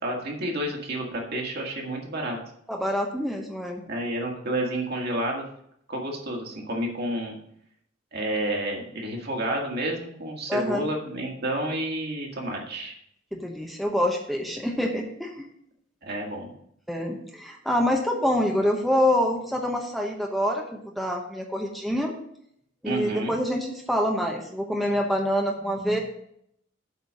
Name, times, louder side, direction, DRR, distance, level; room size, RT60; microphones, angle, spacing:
voice 1, 0.0-2.4 3.9-5.4 5.9-7.4 8.1-12.9 16.0-16.5 22.8-23.4, right 1 dB, 55° right, 0 dB, 1.9 m, -30 dB
voice 2, 2.7-3.8 10.5-10.9 13.3-15.4 16.9-22.1 22.8-26.0, equal, ahead, 1 dB, 0.9 m, -26 dB
8.2 x 4.5 x 6.5 m, 0.71 s
head